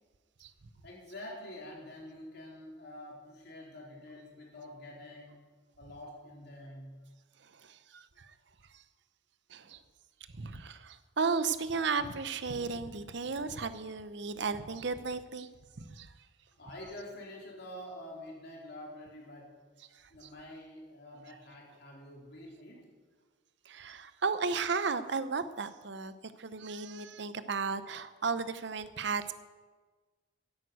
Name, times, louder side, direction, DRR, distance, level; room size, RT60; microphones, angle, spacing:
voice 1, 0.8-5.5 5.8-7.0 16.6-19.6 20.1-22.9, left 1 dB, 55° left, -2 dB, 3.4 m, -47 dB
voice 2, 7.4-8.3 8.7-8.8 9.5-9.8 10.3-15.5 15.8-16.1 19.9-20.0 23.7-29.3, right 4 dB, 60° right, 13 dB, 0.7 m, -34 dB
10.5 x 9.4 x 8.0 m, 1.4 s
head